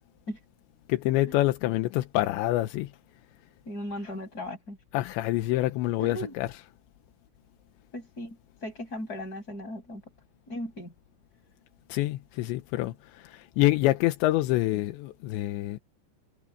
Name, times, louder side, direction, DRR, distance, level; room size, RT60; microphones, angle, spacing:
voice 1, 0.9-2.9 4.9-6.5 11.9-15.8, left 16 dB, 85° left, 3.2 m, -26 dB
voice 2, 3.6-4.8 6.0-6.3 7.9-10.0 10.5-10.9, left 1 dB, 20° left, 8.3 m, -37 dB
omnidirectional pair, 5.2 m